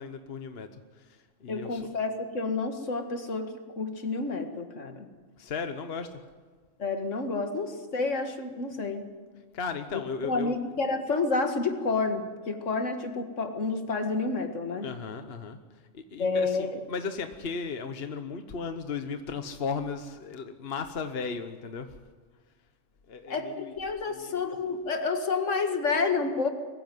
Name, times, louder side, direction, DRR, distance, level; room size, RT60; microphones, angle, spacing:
voice 1, 0.0-1.8 5.4-6.1 9.5-10.6 14.8-15.6 15.9-22.0 23.1-23.7 24.1-24.4, left 5 dB, 55° left, 8 dB, 1.3 m, -36 dB
voice 2, 1.5-5.1 6.8-9.1 10.2-14.9 16.2-16.8 23.3-26.5, left 3 dB, 75° left, 6 dB, 2.2 m, -29 dB
22.5 x 15.0 x 9.3 m, 1.4 s
omnidirectional pair, 1.3 m